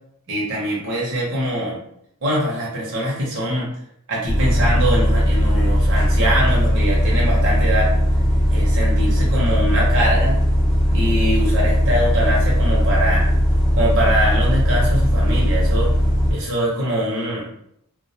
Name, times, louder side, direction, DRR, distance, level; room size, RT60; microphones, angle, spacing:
voice 1, 0.3-1.8 2.2-3.7 4.1-7.9 8.5-10.4 10.9-13.3 13.7-15.9 16.3-17.6, equal, 55° right, -5 dB, 0.7 m, -23 dB
Bus, 4.3-16.3, equal, ahead, 0.5 m, -18 dB
2.2 x 2.1 x 2.7 m, 0.73 s
head